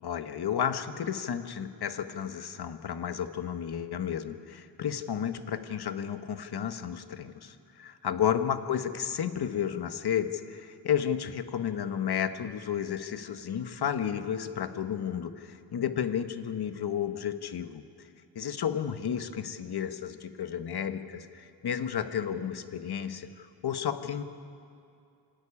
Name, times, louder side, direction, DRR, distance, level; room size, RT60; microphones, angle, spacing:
voice 1, 0.0-17.8 18.3-24.2, left 8 dB, 65° left, 9 dB, 1.2 m, -32 dB
26.5 x 13.5 x 9.9 m, 2.5 s
wide cardioid pair, 150°, 41 cm